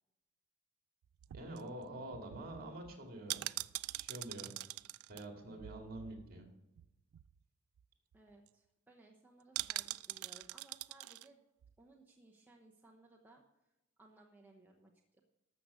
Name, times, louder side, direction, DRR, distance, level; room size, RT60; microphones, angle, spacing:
sound 1, 1.0-6.5 6.8-6.9 7.1-7.4 7.8-7.9 8.1-8.5 9.5-11.3 11.6-11.7, right 17 dB, 90° right, 0.3 m, -44 dB
voice 1, 1.3-3.5 3.9-4.5 5.1-6.5, right 1 dB, 45° right, 3 dB, 2.3 m, -46 dB
voice 2, 8.1-11.4 11.8-13.4 14.0-15.2, right 2 dB, 10° right, 0 dB, 0.9 m, -62 dB
12.5 x 6.8 x 6.3 m, 0.94 s
head